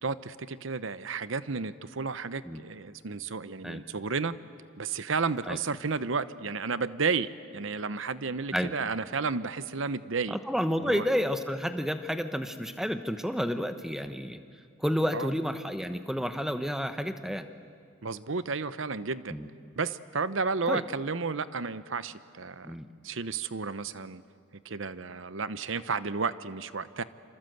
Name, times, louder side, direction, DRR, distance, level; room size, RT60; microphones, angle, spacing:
voice 1, 0.0-4.3 4.8-10.4 10.8-11.1 15.1-15.3 18.0-19.3 19.8-22.8 23.0-24.2 24.6-27.0, right 4 dB, 70° right, 14 dB, 0.8 m, -32 dB
voice 2, 10.3-14.4 14.8-17.5 19.3-19.5 20.7-20.8 22.6-22.9, equal, ahead, 8 dB, 1.0 m, -30 dB
27.5 x 27.0 x 8.0 m, 2.2 s
head